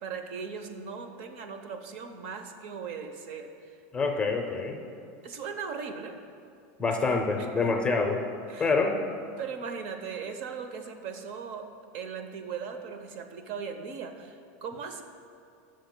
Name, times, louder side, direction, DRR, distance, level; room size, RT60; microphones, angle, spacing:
voice 1, 0.0-3.8 5.2-6.2 7.0-7.7 8.5-8.7 9.4-11.7 11.9-15.0, right 6 dB, 55° right, 7 dB, 0.7 m, -38 dB
voice 2, 3.9-4.8 6.8-8.2 8.6-9.0, left 4 dB, 10° left, 3 dB, 0.5 m, -26 dB
19.5 x 6.5 x 2.2 m, 2.4 s
supercardioid pair, 170°, 8 cm